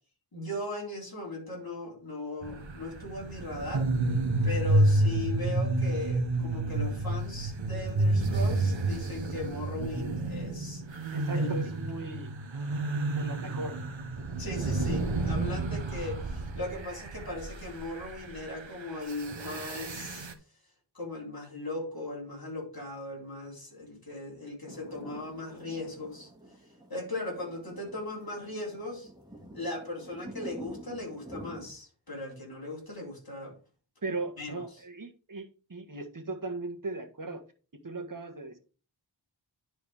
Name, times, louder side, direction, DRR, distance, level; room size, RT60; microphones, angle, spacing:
voice 1, 0.3-3.9 4.4-10.8 11.4-11.5 14.4-20.3 20.9-26.3 26.9-29.1 29.5-33.5 34.4-34.6, left 2 dB, 50° left, 3.6 m, -38 dB
sound 1, 2.4-20.3, right 2 dB, 75° right, 1.1 m, -30 dB
voice 2, 11.1-12.3 13.2-13.8 34.0-37.4 37.8-38.6, right 3 dB, 45° right, 1.5 m, -37 dB
sound 2, 24.7-31.7, right 1 dB, 10° right, 2.1 m, -48 dB
10.5 x 4.5 x 3.5 m
wide cardioid pair, 65°, 46 cm